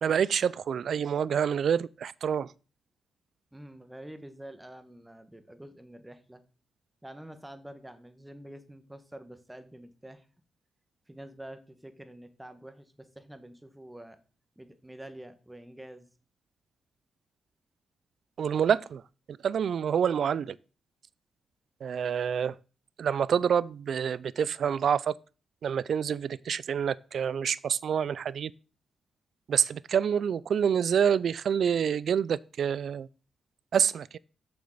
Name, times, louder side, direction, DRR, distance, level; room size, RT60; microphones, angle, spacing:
voice 1, 0.0-2.5 18.4-19.0 19.3-20.6 21.8-22.6 23.0-25.1 25.6-28.5 29.5-33.1 33.7-34.2, right 7 dB, 65° right, 0.4 m, -27 dB
voice 2, 3.5-6.4 7.0-10.3 11.1-14.2 14.6-16.1, right 1 dB, 10° right, 1.5 m, -47 dB
7.9 x 6.8 x 6.6 m
cardioid pair, 95°, 0 cm